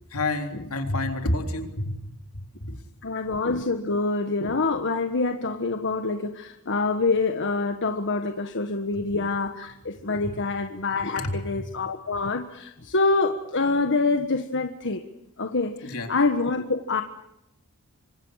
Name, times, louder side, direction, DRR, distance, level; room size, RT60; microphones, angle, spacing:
voice 1, 0.1-2.1 2.6-2.8 10.2-10.3 11.2-11.6 15.8-16.1, left 2 dB, 75° left, 5 dB, 3.8 m, -29 dB
voice 2, 3.0-15.0 15.4-17.0, left 3 dB, 55° left, 7 dB, 1.5 m, -26 dB
26.5 x 25.5 x 6.6 m, 0.85 s
head